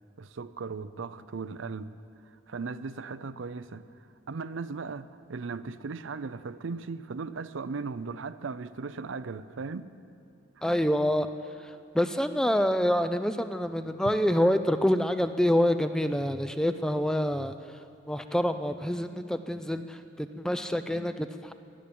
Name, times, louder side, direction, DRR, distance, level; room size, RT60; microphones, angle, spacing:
voice 1, 0.2-2.0 2.5-3.9 4.3-9.9 10.6-10.7, right 4 dB, 80° right, 0.5 m, -37 dB
voice 2, 10.6-11.3 11.6-17.5 18.1-21.5, equal, 5° left, 0.4 m, -27 dB
21.0 x 7.3 x 8.5 m
head